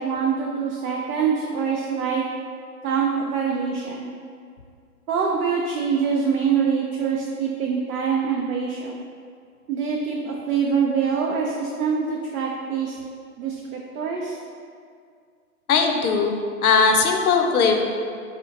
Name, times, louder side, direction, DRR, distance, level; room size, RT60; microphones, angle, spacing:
voice 1, 0.0-2.3 2.8-4.1 5.1-9.0 9.7-13.0 13.4-14.4, right 6 dB, 70° right, -1 dB, 0.5 m, -24 dB
voice 2, 15.7-16.3 16.6-17.8, left 5 dB, 70° left, 3 dB, 0.5 m, -19 dB
4.2 x 2.4 x 2.6 m, 2.2 s
figure-of-eight pair, 115°, 47 cm